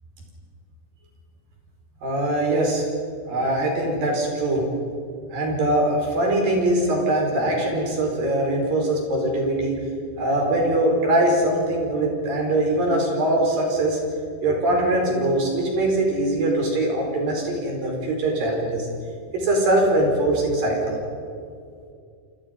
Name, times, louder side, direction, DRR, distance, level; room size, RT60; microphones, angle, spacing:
voice 1, 2.0-2.9 3.3-4.6 5.3-9.8 10.2-14.0 14.4-18.9 19.3-21.0, right 1 dB, 55° right, 0 dB, 6.6 m, -22 dB
27.5 x 27.0 x 5.5 m, 2.3 s
omnidirectional pair, 5.0 m